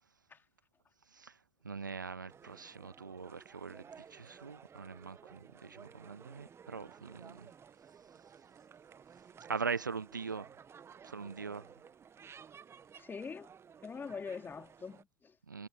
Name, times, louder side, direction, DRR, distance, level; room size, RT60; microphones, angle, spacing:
voice 1, 1.6-3.8 4.1-7.5 9.5-10.5 11.0-11.6 15.5-15.7, right 5 dB, 90° right, 0.5 m, -41 dB
sound 1, 2.3-15.0, right 7 dB, 25° right, 1.4 m, -56 dB
voice 2, 12.9-13.5 13.8-15.4, left 5 dB, 20° left, 3.4 m, -44 dB
figure-of-eight pair, 80°, 10 cm